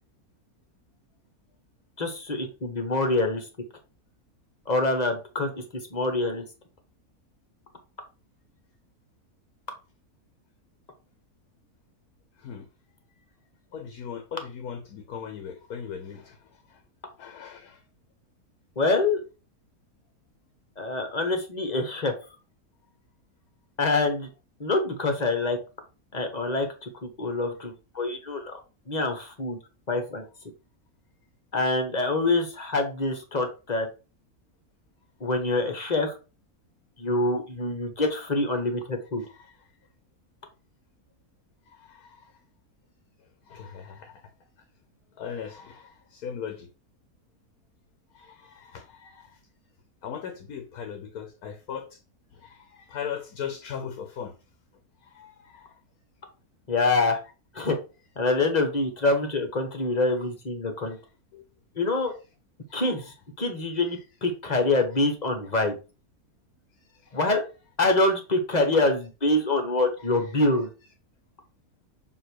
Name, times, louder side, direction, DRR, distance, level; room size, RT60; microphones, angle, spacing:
voice 1, 2.0-3.5 4.7-5.6 5.9-6.4 18.8-19.2 20.8-22.1 23.8-24.3 24.6-25.6 26.1-28.6 28.9-29.6 29.9-30.2 31.5-33.9 35.2-36.1 37.0-39.2 56.7-57.2 57.5-57.8 58.2-61.0 61.7-62.1 62.7-65.7 67.1-67.4 67.8-70.7, left 2 dB, 30° left, 1.2 m, -25 dB
voice 2, 13.7-16.8 17.2-17.8 39.2-39.6 41.7-42.3 43.5-44.3 45.1-46.7 48.1-49.4 50.0-52.0 52.3-54.3 55.0-55.8 61.3-61.4 62.7-63.0 66.8-67.2, left 7 dB, 75° left, 1.4 m, -39 dB
6.9 x 3.1 x 4.5 m
omnidirectional pair, 1.6 m